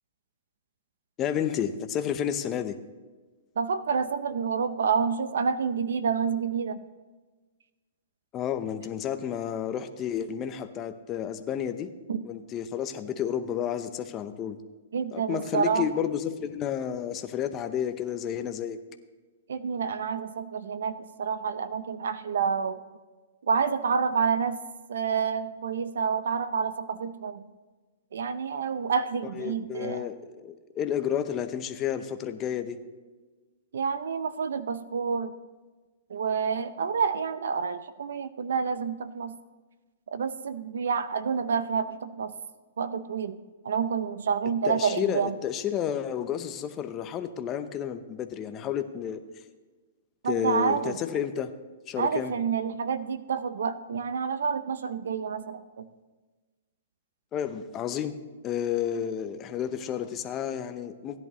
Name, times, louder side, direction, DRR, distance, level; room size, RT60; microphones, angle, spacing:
voice 1, 1.2-2.8 8.3-11.9 12.2-14.6 15.1-18.8 29.3-32.8 44.7-49.2 50.2-51.5 51.9-52.3 57.3-58.2 58.4-61.2, left 9 dB, 25° left, 9 dB, 0.7 m, -31 dB
voice 2, 3.6-6.8 12.1-12.2 14.9-15.9 19.5-22.8 23.5-24.6 24.9-27.4 28.1-30.1 33.7-35.4 36.1-39.4 40.1-42.3 42.8-45.4 50.2-51.0 52.0-55.9, right 6 dB, 80° right, 14 dB, 0.6 m, -28 dB
16.0 x 10.5 x 3.1 m, 1.3 s
hypercardioid pair, 145°, 0 cm